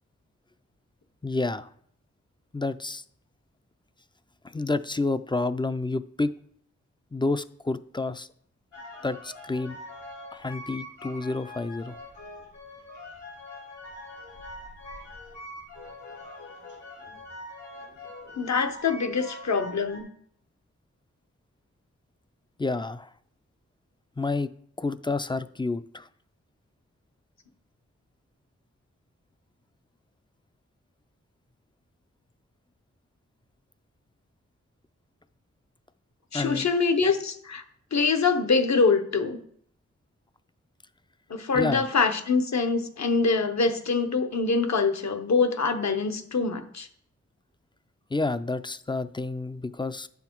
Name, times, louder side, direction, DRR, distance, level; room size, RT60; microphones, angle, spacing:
voice 1, 1.2-1.7 2.5-3.0 4.4-6.3 7.1-8.3 9.0-9.8 10.3-12.0 22.6-23.1 24.2-24.5 24.8-26.1 36.3-36.7 41.5-41.8 48.1-50.1, left 3 dB, 15° left, 13 dB, 0.3 m, -29 dB
sound 1, 8.7-20.0, left 1 dB, 85° left, 1.9 m, -43 dB
voice 2, 18.4-20.1 36.3-37.6 37.9-39.4 41.3-46.9, left 4 dB, 65° left, 7 dB, 0.9 m, -24 dB
9.3 x 5.8 x 4.5 m, 0.65 s
wide cardioid pair, 85°, 29 cm